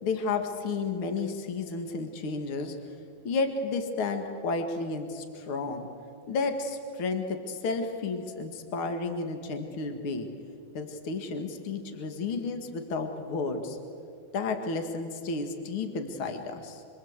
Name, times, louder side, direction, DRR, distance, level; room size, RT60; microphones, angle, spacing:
voice 1, 0.0-2.7 3.2-5.9 6.3-10.3 10.7-13.8 14.3-16.8, left 4 dB, 55° left, 5 dB, 1.4 m, -32 dB
26.0 x 24.5 x 8.1 m, 2.5 s
omnidirectional pair, 5.4 m